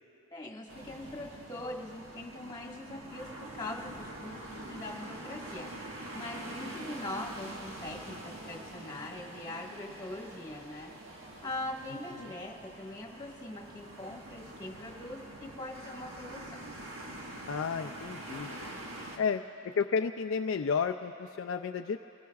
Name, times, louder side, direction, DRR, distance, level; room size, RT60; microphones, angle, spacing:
voice 1, 0.3-5.7 6.1-10.9 11.4-16.6, left 1 dB, 15° left, -1 dB, 1.6 m, -42 dB
sound 1, 0.7-19.2, right 1 dB, 65° right, 1.6 m, -45 dB
voice 2, 17.5-18.6 19.2-22.0, left 5 dB, 60° left, 5 dB, 0.3 m, -32 dB
30.0 x 20.0 x 2.4 m, 2.9 s
head